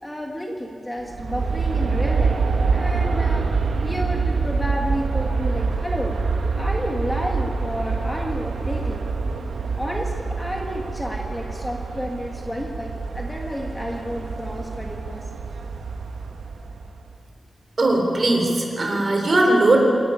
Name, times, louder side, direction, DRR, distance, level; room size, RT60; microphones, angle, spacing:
voice 1, 0.0-2.3 2.6-3.5 3.8-6.2 6.6-9.1 9.8-15.2, equal, 5° left, 0 dB, 1.6 m, -31 dB
Aircraft, 1.0-17.1, right 4 dB, 85° right, 1.4 m, -26 dB
voice 2, 17.8-19.8, right 2 dB, 40° right, 1 dB, 3.8 m, -19 dB
27.0 x 11.0 x 9.7 m, 2.5 s
wide cardioid pair, 160°, 0 cm